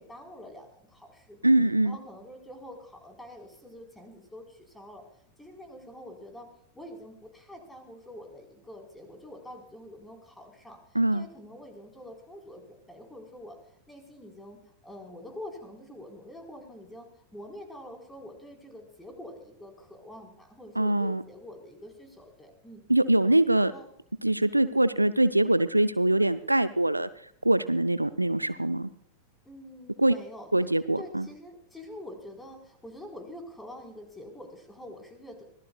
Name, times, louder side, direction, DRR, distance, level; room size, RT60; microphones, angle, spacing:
voice 1, 0.0-1.5 1.8-5.0 5.4-6.5 6.7-10.8 11.1-13.6 13.9-17.1 17.3-22.9 23.6-23.9 24.6-24.8 29.4-30.7 31.0-35.4, left 1 dB, 5° left, 3 dB, 4.4 m, -46 dB
voice 2, 1.4-2.0 10.9-11.3 20.8-21.2 22.9-23.7 24.2-27.1 27.4-28.9 30.0-30.1 30.5-31.3, right 1 dB, 85° right, 14 dB, 0.6 m, -23 dB
24.5 x 18.0 x 2.4 m, 0.67 s
figure-of-eight pair, 90°, 0 cm